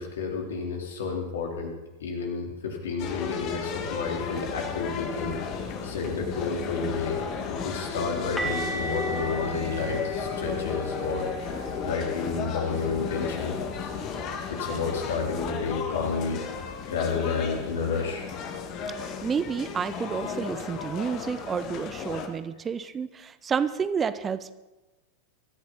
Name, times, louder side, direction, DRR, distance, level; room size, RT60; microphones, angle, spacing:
voice 1, 0.0-1.7 2.0-7.2 7.5-13.6 13.8-13.9 14.5-16.4 16.9-18.3, left 5 dB, 60° left, 0 dB, 3.6 m, -31 dB
sound 1, 3.0-22.3, left 6 dB, 40° left, 1.9 m, -34 dB
sound 2, 8.4-14.1 14.4-14.7 15.0-15.2 18.4-18.5, right 3 dB, 5° left, 3.0 m, -38 dB
voice 2, 19.0-24.5, right 6 dB, 20° right, 13 dB, 0.7 m, -30 dB
23.5 x 14.0 x 4.1 m, 1.1 s
figure-of-eight pair, 90°, 0 cm